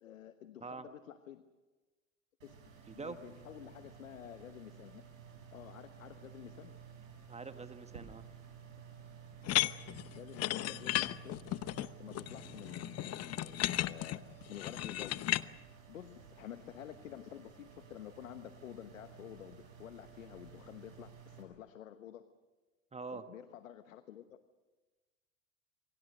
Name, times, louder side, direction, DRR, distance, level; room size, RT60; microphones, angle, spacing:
voice 1, 0.0-1.5 2.4-2.5 2.9-5.1 5.5-6.7 10.2-11.5 11.8-15.3 15.9-22.3 23.1-24.4, left 11 dB, 85° left, 10 dB, 1.2 m, -50 dB
sound 1, 2.4-21.4, right 7 dB, 85° right, 6.9 m, -54 dB
voice 2, 2.9-3.2 7.3-8.2 22.9-23.2, right 4 dB, 15° right, 9 dB, 1.4 m, -44 dB
sound 2, 9.4-15.4, left 15 dB, 40° left, 0.9 m, -35 dB
27.5 x 24.0 x 6.7 m, 1.3 s
hypercardioid pair, 85°, 38 cm